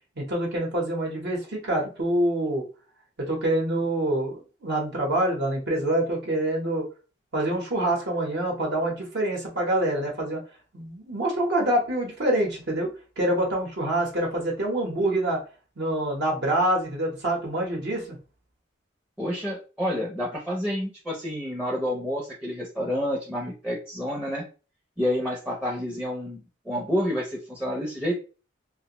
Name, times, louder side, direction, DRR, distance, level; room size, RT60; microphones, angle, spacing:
voice 1, 0.2-2.7 3.2-6.9 7.3-10.4 10.7-15.4 15.8-18.2, right 1 dB, 60° right, -1 dB, 0.9 m, -26 dB
voice 2, 19.2-24.4 25.0-28.2, equal, 5° right, -4 dB, 0.5 m, -29 dB
2.5 x 2.1 x 2.9 m, 0.34 s
head